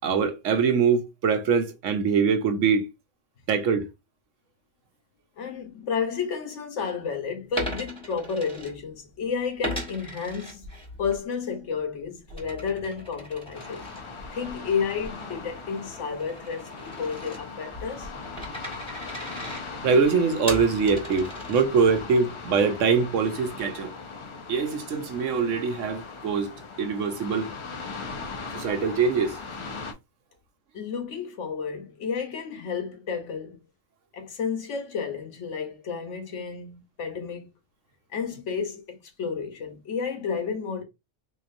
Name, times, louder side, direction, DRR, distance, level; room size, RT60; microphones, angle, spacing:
voice 1, 0.0-2.9 3.5-3.9 19.8-23.9 24.5-27.5 28.5-29.4, right 5 dB, 75° right, 1.1 m, -23 dB
voice 2, 5.4-10.7 11.0-13.8 14.3-18.1 30.7-33.6 34.1-37.5 38.1-40.8, left 6 dB, 65° left, 1.2 m, -31 dB
Coin (dropping), 7.5-9.2 9.6-11.2 11.6-22.0, equal, 5° left, 1.2 m, -38 dB
sound 1, 13.5-29.9, left 4 dB, 45° left, 0.4 m, -39 dB
3.9 x 2.9 x 2.5 m
omnidirectional pair, 1.3 m